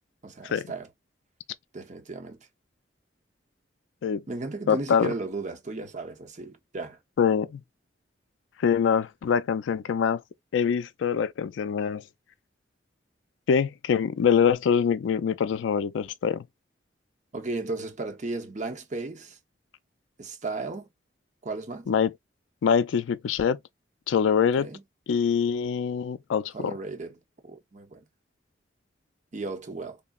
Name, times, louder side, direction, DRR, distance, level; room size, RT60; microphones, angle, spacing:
voice 1, 0.2-0.9 1.7-2.5 4.3-7.0 17.3-19.4 20.2-20.9 21.4-21.9 24.6-24.8 26.5-28.0 29.3-30.0, right 3 dB, 40° right, 0.7 m, -35 dB
voice 2, 4.7-5.1 7.2-7.6 8.6-10.2 10.5-12.0 13.5-16.5 21.9-22.1 22.6-23.6 24.1-24.7 25.1-26.7, left 7 dB, 90° left, 0.3 m, -24 dB
3.6 x 2.0 x 2.3 m
head